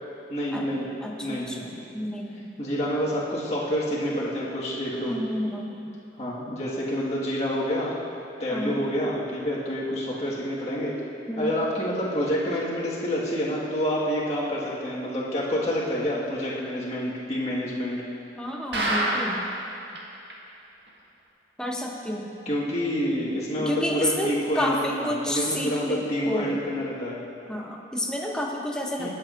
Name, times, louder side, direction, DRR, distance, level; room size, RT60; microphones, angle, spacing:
voice 1, 0.3-0.9 1.2-1.8 2.6-5.2 6.2-7.9 8.4-10.9 11.4-18.0 22.5-27.2 29.0-29.1, equal, 40° left, -7 dB, 1.7 m, -28 dB
voice 2, 1.0-2.5 5.0-5.9 8.5-8.9 11.3-11.6 18.4-19.4 21.6-22.4 23.6-26.6 27.5-29.1, left 1 dB, 5° left, 0 dB, 0.7 m, -30 dB
sound 1, 18.7-19.6 20.0-20.1 20.3-20.4 20.9-21.0, right 1 dB, 75° right, 1.6 m, -25 dB
21.0 x 7.5 x 2.5 m, 2.8 s
head